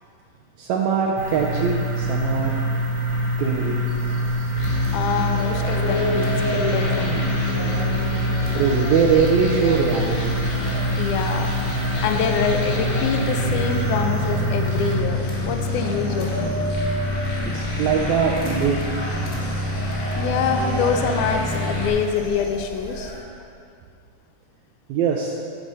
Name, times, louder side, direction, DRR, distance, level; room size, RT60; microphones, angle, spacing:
voice 1, 0.6-2.6 3.4-3.8 8.5-10.4 16.8-16.9 17.2-18.8 19.1-19.3 24.9-25.3, right 6 dB, 80° right, -1 dB, 1.7 m, -22 dB
sound 1, 1.2-15.0, right 1 dB, 55° right, 1.8 m, -25 dB
sound 2, 3.9-23.2, left 1 dB, 35° left, 1.4 m, -33 dB
voice 2, 4.6-7.2 11.0-16.5 20.2-23.1 23.4-23.5, left 6 dB, 75° left, 5 dB, 2.0 m, -26 dB
sound 3, 4.6-21.9, left 2 dB, 60° left, 2.9 m, -28 dB
13.5 x 4.9 x 4.0 m, 2.3 s
omnidirectional pair, 3.8 m